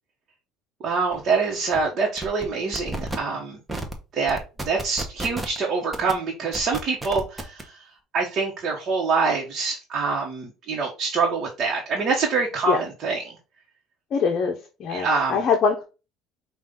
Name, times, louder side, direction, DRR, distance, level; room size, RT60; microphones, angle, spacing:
voice 1, 0.8-3.6 4.1-4.4 4.6-7.8 8.1-13.4 14.9-15.4, right 4 dB, 45° right, -1 dB, 1.1 m, -25 dB
sound 1, 1.1-1.2 1.5-1.8 2.2-2.5 2.7-3.2 3.7-3.9 4.3-5.6 5.9-6.1 6.5-7.6, right 1 dB, 10° right, 0.8 m, -32 dB
voice 2, 14.1-14.6 14.8-15.8, left 5 dB, 50° left, 3 dB, 0.7 m, -22 dB
5.3 x 2.4 x 3.6 m, 0.30 s
cardioid pair, 120°, 0 cm